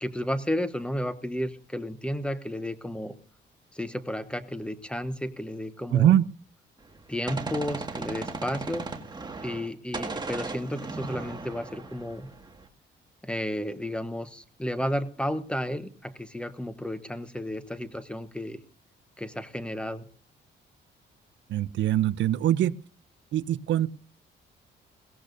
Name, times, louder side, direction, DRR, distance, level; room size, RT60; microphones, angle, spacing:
voice 1, 0.0-3.2 3.7-6.1 7.1-8.9 9.4-12.3 13.2-18.6 19.2-20.1, equal, 5° left, 12 dB, 1.1 m, -32 dB
voice 2, 5.9-6.2 21.5-22.7 23.3-23.9, right 11 dB, 70° right, 18 dB, 0.6 m, -22 dB
Gunshot gunfire, 6.8-9.7 9.9-12.7, right 3 dB, 20° right, 1.8 m, -36 dB
21.5 x 17.0 x 2.6 m, 0.41 s
cardioid pair, 90°, 20 cm